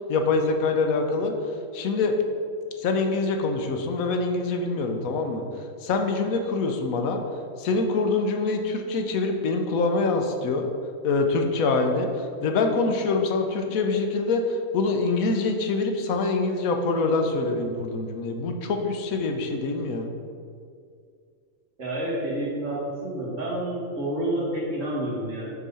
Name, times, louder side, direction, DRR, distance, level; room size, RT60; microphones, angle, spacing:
voice 1, 0.1-1.3 1.7-2.1 2.8-5.4 5.8-7.2 7.6-10.7 11.0-20.1, left 3 dB, 90° left, 4 dB, 1.2 m, -25 dB
voice 2, 21.8-25.5, right 1 dB, 65° right, -5 dB, 2.1 m, -29 dB
6.1 x 4.0 x 5.6 m, 2.3 s
omnidirectional pair, 1.4 m